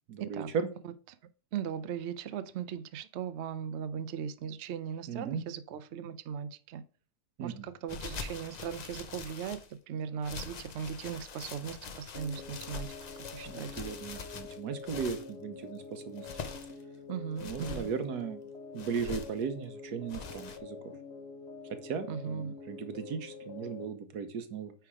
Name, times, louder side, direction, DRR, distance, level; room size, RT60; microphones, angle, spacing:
voice 1, 0.1-0.7 5.1-5.4 7.4-7.7 13.5-16.3 17.4-18.4 18.7-20.8 21.7-24.7, right 6 dB, 85° right, 1.4 m, -36 dB
voice 2, 1.5-6.8 7.4-9.6 9.9-12.9 13.3-13.7 17.1-17.9 22.1-22.5, right 8 dB, 65° right, 0.7 m, -38 dB
sound 1, 7.9-9.7 10.2-15.3 16.0-16.8 17.4-17.9 18.8-19.4 20.1-20.6, left 5 dB, 75° left, 0.4 m, -43 dB
sound 2, 12.1-23.8, left 4 dB, 45° left, 1.7 m, -46 dB
9.2 x 3.5 x 4.8 m
omnidirectional pair, 1.6 m